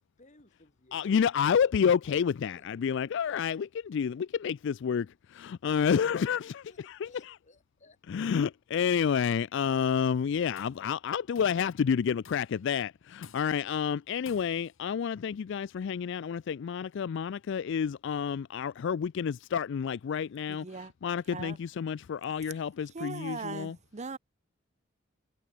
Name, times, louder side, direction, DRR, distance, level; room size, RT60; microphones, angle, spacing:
voice 1, 0.2-1.1 6.7-8.0, left 2 dB, 40° left, 4.5 m, -59 dB
voice 2, 0.9-7.4 8.1-23.8, left 7 dB, 65° left, 0.4 m, -29 dB
Tools, 10.3-10.9 11.3-11.7 12.2-12.7 13.2-13.7 14.3-14.8, left 6 dB, 85° left, 1.8 m, -54 dB
voice 3, 20.6-20.9 21.3-21.6 22.9-24.2, right 4 dB, 35° right, 0.8 m, -39 dB
head